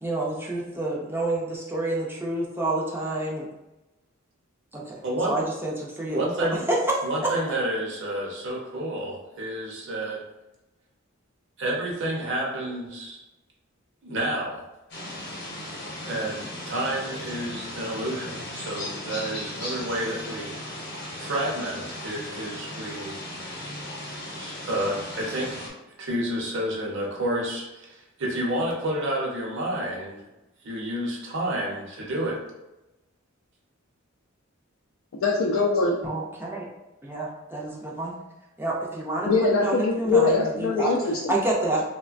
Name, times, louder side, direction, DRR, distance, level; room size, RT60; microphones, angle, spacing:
voice 1, 0.0-3.5 4.7-4.9 5.3-7.0 36.0-36.7 37.0-38.1 38.6-40.9 41.3-41.8, right 2 dB, 10° right, -4 dB, 0.4 m, -28 dB
voice 2, 5.0-5.4 6.1-6.6 7.0-10.2 11.6-13.2 14.0-14.6 16.0-20.6 21.2-23.2 24.3-25.7 26.0-30.3 30.6-32.4, right 1 dB, 60° right, -3 dB, 0.8 m, -30 dB
sound 1, 14.9-25.7, left 1 dB, 50° left, 0.8 m, -37 dB
voice 3, 35.2-36.0 39.3-41.3, left 3 dB, 70° left, -2 dB, 0.3 m, -22 dB
3.1 x 2.1 x 2.5 m, 0.99 s
head